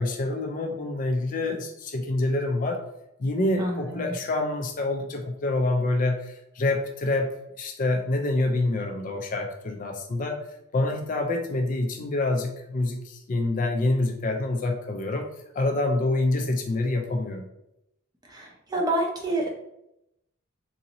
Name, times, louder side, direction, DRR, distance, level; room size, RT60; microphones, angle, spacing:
voice 1, 0.0-2.8 3.2-10.4 10.7-15.3 15.5-17.5, left 2 dB, 40° left, 4 dB, 0.4 m, -26 dB
voice 2, 3.6-4.2 18.3-19.5, right 1 dB, 20° right, 0 dB, 0.6 m, -28 dB
3.9 x 2.6 x 2.9 m, 0.83 s
head